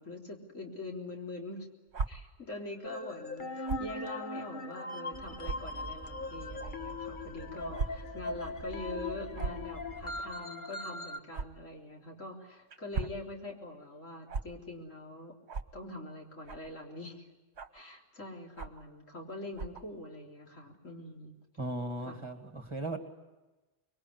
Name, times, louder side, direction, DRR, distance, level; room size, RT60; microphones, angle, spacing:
voice 1, 0.0-1.7 2.1-15.3 15.7-17.3 17.7-21.3 22.0-22.3, left 2 dB, 85° left, 0 dB, 4.2 m, -44 dB
sound 1, 1.9-2.1 3.6-3.9 4.6-4.7 5.4-5.6 6.6-6.7 7.7-7.9 8.2-8.4 9.3-9.6 11.3-11.5 12.7-13.2 14.3-14.4 15.5-15.7 16.5-16.7 17.6-17.8 18.6-18.8 19.5-19.8, right 4 dB, 60° right, 1.4 m, -36 dB
sound 2, 2.8-11.2, left 2 dB, 40° left, 1.4 m, -40 dB
sound 3, 5.1-10.2, right 4 dB, 10° left, 3.7 m, -48 dB
voice 2, 21.6-23.0, right 1 dB, 20° right, 5 dB, 2.3 m, -37 dB
25.0 x 22.5 x 9.6 m, 1.1 s
omnidirectional pair, 1.3 m